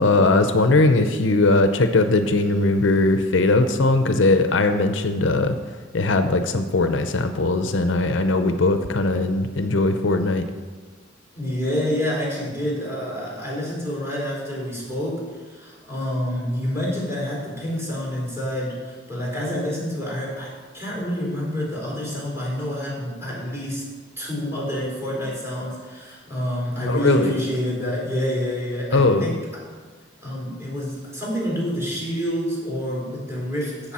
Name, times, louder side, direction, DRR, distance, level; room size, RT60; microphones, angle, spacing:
voice 1, 0.0-5.6 5.9-10.4 26.9-27.3 28.9-29.3, left 2 dB, 70° left, 8 dB, 0.7 m, -19 dB
voice 2, 11.3-23.9 24.2-29.5 30.2-33.9, equal, 10° right, -4 dB, 3.9 m, -28 dB
16.0 x 6.6 x 4.2 m, 1.5 s
head